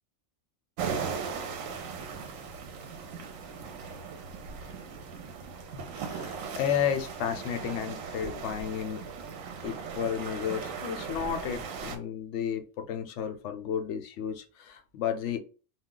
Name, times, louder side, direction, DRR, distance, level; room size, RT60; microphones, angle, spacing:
sound 1, 0.8-12.0, right 6 dB, 85° right, 1.0 m, -38 dB
voice 1, 6.0-9.0 9.6-15.4, left 8 dB, 70° left, 0.8 m, -32 dB
2.3 x 2.3 x 3.7 m
omnidirectional pair, 1.3 m